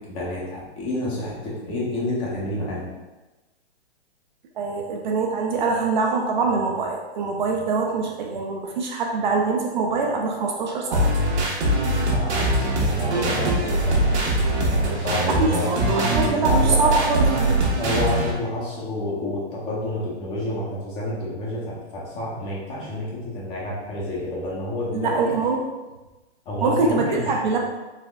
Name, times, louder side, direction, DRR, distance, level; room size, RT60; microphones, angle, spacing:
voice 1, 0.1-2.9 12.1-14.1 14.7-15.7 16.3-16.9 17.8-25.3 26.5-27.4, left 1 dB, 15° left, -5 dB, 0.6 m, -29 dB
voice 2, 4.6-11.1 15.2-17.6 24.9-25.7 26.6-27.6, right 4 dB, 45° right, 1 dB, 0.4 m, -24 dB
sound 1, 10.9-18.3, right 1 dB, 75° right, 1.2 m, -22 dB
4.1 x 2.9 x 2.2 m, 1.1 s
hypercardioid pair, 145°, 34 cm